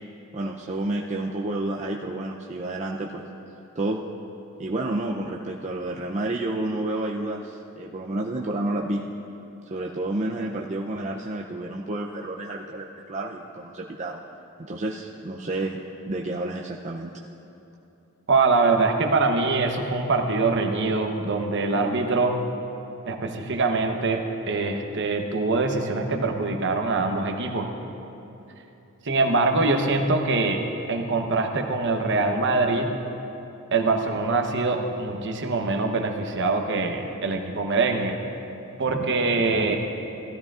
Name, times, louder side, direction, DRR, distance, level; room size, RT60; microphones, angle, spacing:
voice 1, 0.3-3.2 3.8-4.0 4.6-9.0 9.6-14.2 14.6-15.8 16.1-17.1, right 2 dB, 30° right, -1 dB, 0.5 m, -30 dB
voice 2, 18.3-22.4 23.1-27.7 29.1-30.6 30.9-32.9 33.7-38.1 38.8-39.8, right 3 dB, 55° right, 4 dB, 0.9 m, -23 dB
16.5 x 13.0 x 2.4 m, 2.9 s
head